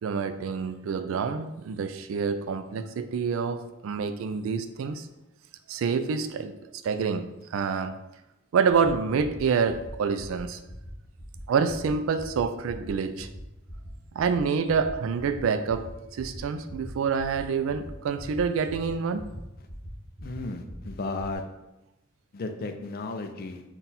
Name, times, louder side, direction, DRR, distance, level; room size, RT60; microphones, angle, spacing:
voice 1, 0.0-5.1 5.7-6.6 6.8-7.9 8.5-10.6 11.5-13.3 14.1-15.9 16.2-19.3, right 5 dB, 80° right, 10 dB, 0.3 m, -27 dB
sound 1, 8.7-8.9 9.2-9.4 9.7-9.9 10.2-10.4 10.7-10.9 11.2-11.4 11.7-11.9 12.2-12.4 12.7-12.9 13.2-13.4 13.7-13.9 14.2-14.4 14.7-14.9 15.2-15.4 15.7-15.9 16.2-16.4 16.7-16.9 17.2-17.4 17.7-17.9 18.2-18.4 18.7-18.9 19.2-19.4 19.7-19.9 20.2-20.4 20.7-20.9 21.2-21.4, equal, 10° right, 1.1 m, -42 dB
voice 2, 20.2-21.4 22.3-23.6, left 3 dB, 50° left, 6 dB, 0.4 m, -34 dB
4.0 x 2.3 x 4.0 m, 0.94 s
head